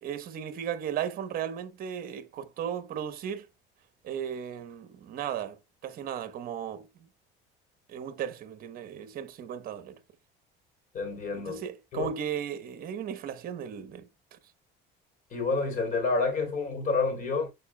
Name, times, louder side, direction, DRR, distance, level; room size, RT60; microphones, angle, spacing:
voice 1, 0.0-3.5 4.0-6.9 7.9-10.0 11.3-14.4, right 9 dB, 45° right, 1.0 m, -36 dB
voice 2, 10.9-11.6 11.9-12.1 15.3-17.5, left 4 dB, 40° left, 3.7 m, -28 dB
12.5 x 4.7 x 2.2 m
cardioid pair, 135°, 21 cm